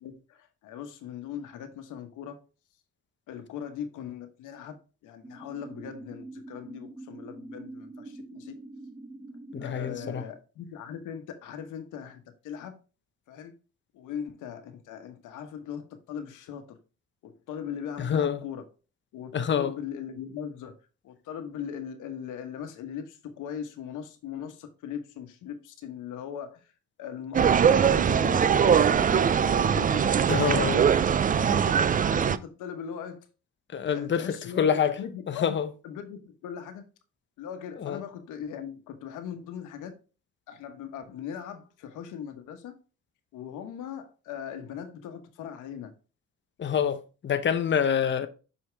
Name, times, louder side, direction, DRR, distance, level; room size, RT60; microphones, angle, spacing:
voice 1, 0.0-2.4 3.3-8.6 9.6-12.8 13.3-13.5 13.9-16.8 17.2-18.6 19.1-20.7 21.0-26.6 27.0-30.2 31.4-33.2 33.8-35.5 35.8-36.9 37.4-39.9 40.5-42.7 43.3-45.9, left 8 dB, 90° left, 1.2 m, -39 dB
sound 1, 5.2-10.2, right 2 dB, 10° right, 0.9 m, -44 dB
voice 2, 9.5-10.2 18.0-18.4 19.3-19.7 30.3-30.8 33.7-35.0 35.3-35.7 37.8-38.0 46.6-48.3, left 8 dB, 40° left, 0.8 m, -26 dB
sound 2, 27.3-32.4, right 7 dB, 30° right, 0.4 m, -22 dB
6.3 x 4.8 x 3.4 m
cardioid pair, 90°, 30 cm